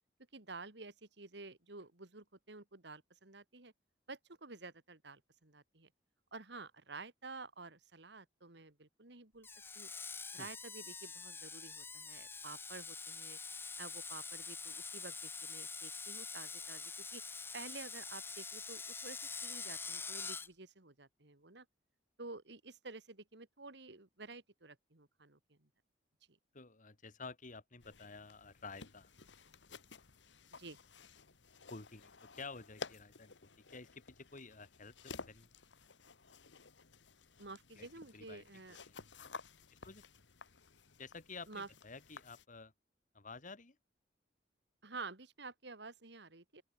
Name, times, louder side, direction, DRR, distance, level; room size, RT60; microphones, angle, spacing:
voice 1, 0.3-3.7 4.1-5.9 6.3-9.5 9.7-9.9 10.3-13.4 13.8-17.2 17.5-21.7 22.2-25.7 26.3-26.4 30.5-30.8 37.4-38.8 41.5-41.7 44.8-46.6, right 3 dB, 70° right, 2.5 m, -51 dB
Screech, 9.4-20.5, left 5 dB, 15° left, 0.4 m, -45 dB
voice 2, 26.5-29.1 31.7-33.3 33.7-35.5 37.8-37.9 38.1-38.4 38.9-39.0 39.8-40.0 41.0-42.7 43.1-43.8, left 4 dB, 45° left, 1.8 m, -51 dB
sound 1, 27.8-42.5, left 4 dB, 90° left, 1.6 m, -54 dB
open air
head